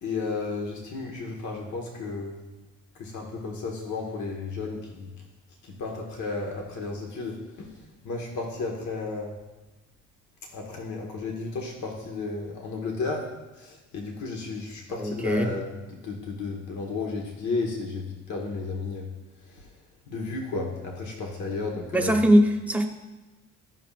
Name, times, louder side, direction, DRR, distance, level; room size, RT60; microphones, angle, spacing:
voice 1, 0.0-2.4 3.0-5.1 5.6-7.7 8.0-9.3 10.5-13.3 13.6-19.1 19.5-19.7 20.1-22.2, left 3 dB, 70° left, 0 dB, 1.5 m, -33 dB
voice 2, 15.0-15.6 21.9-22.9, equal, 5° right, 3 dB, 1.0 m, -21 dB
14.0 x 5.7 x 2.5 m, 1.1 s
cardioid pair, 90°, 30 cm